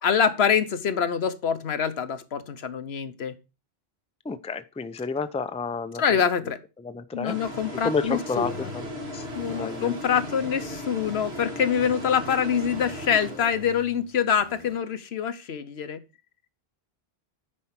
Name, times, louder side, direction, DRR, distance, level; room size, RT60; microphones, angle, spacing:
voice 1, 0.0-3.4 6.0-6.6 7.1-8.7 9.3-16.0, left 7 dB, 85° left, 1.2 m, -25 dB
voice 2, 4.2-6.2 6.8-7.4 7.7-8.9 9.1-10.0, left 4 dB, 10° left, 0.4 m, -31 dB
sound 1, 7.3-13.9, left 1 dB, 80° right, 2.4 m, -37 dB
sound 2, 8.4-11.4 11.8-14.8, left 2 dB, 40° right, 2.3 m, -47 dB
9.7 x 4.5 x 5.8 m
omnidirectional pair, 1.0 m